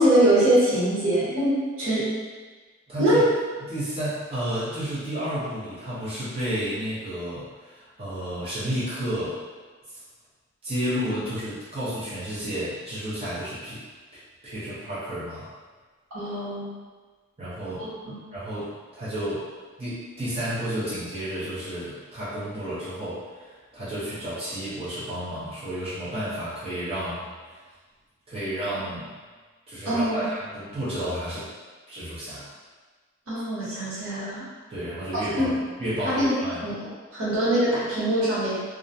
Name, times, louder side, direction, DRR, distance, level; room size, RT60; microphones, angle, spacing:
voice 1, 0.0-2.1 3.0-3.2 16.1-16.7 17.8-18.2 29.8-30.3 33.3-34.5 35.4-35.5 36.0-36.9 37.1-38.6, right 1 dB, 85° right, -10 dB, 1.1 m, -23 dB
voice 2, 2.9-3.2 3.7-9.4 9.9-10.0 10.6-13.8 14.4-15.5 17.4-17.9 18.3-19.5 19.8-27.3 28.3-29.2 29.7-31.5 31.9-32.5 34.7-36.6, equal, 30° right, -12 dB, 0.7 m, -31 dB
2.3 x 2.1 x 2.6 m, 1.4 s
head